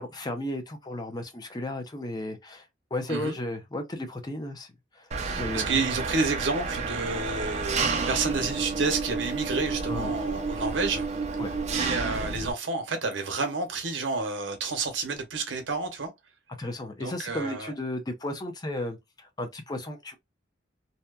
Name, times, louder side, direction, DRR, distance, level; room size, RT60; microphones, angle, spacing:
voice 1, 0.0-2.7 2.9-5.1 5.4-5.9 9.9-10.2 11.4-11.6 16.6-20.2, left 1 dB, 20° left, 0.5 m, -34 dB
Engine, 5.1-12.5, right 4 dB, 35° right, 0.4 m, -30 dB
voice 2, 5.2-11.1 11.7-16.1 17.0-17.7, right 3 dB, 80° right, 0.8 m, -30 dB
2.7 x 2.2 x 2.3 m
head